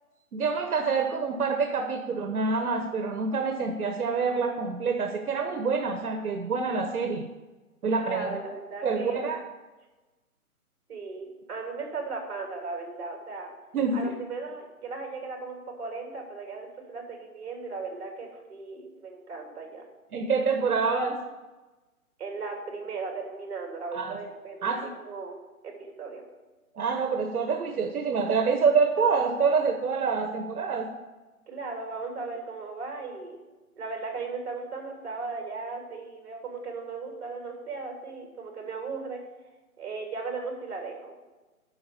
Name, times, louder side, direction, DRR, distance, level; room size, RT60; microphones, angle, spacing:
voice 1, 0.3-7.3 7.8-8.3 8.8-9.4 13.7-14.1 20.1-21.2 23.9-24.2 24.6-24.9 26.7-30.9, right 5 dB, 80° right, 4 dB, 1.2 m, -26 dB
voice 2, 8.0-9.2 10.9-13.5 13.9-19.8 22.2-25.4 25.6-26.2 31.5-33.4 33.7-39.2 39.8-41.1, right 4 dB, 45° right, 1 dB, 3.1 m, -37 dB
9.6 x 6.2 x 6.8 m, 1.2 s
hypercardioid pair, 170°, 44 cm